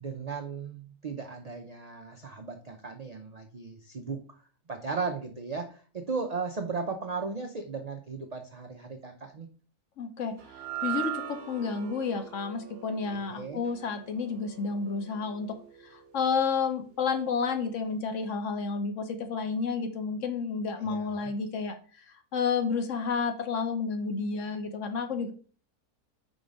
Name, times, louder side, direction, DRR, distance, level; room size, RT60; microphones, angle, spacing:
voice 1, 0.0-4.4 4.7-9.5 13.1-13.6 20.8-21.3, right 4 dB, 70° right, 4 dB, 0.3 m, -36 dB
voice 2, 10.0-10.4 10.8-15.6 15.9-21.8 22.3-25.3, left 5 dB, 60° left, 7 dB, 1.0 m, -30 dB
sound 1, 10.4-16.8, right 11 dB, 55° right, 0.7 m, -40 dB
5.2 x 3.9 x 5.1 m, 0.41 s
omnidirectional pair, 1.6 m